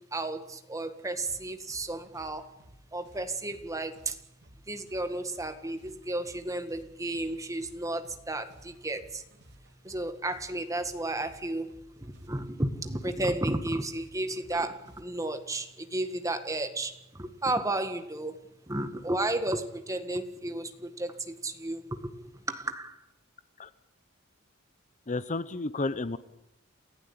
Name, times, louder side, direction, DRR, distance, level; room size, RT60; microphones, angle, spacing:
voice 1, 0.1-2.4 2.9-4.1 4.7-9.2 9.8-11.7 12.0-18.3 18.7-21.8 22.2-22.9, right 2 dB, 15° right, 1.8 m, -33 dB
sound 1, 1.1-15.1, equal, 55° right, 3.2 m, -58 dB
voice 2, 25.1-26.2, left 2 dB, 35° left, 0.8 m, -31 dB
28.5 x 16.0 x 8.7 m
head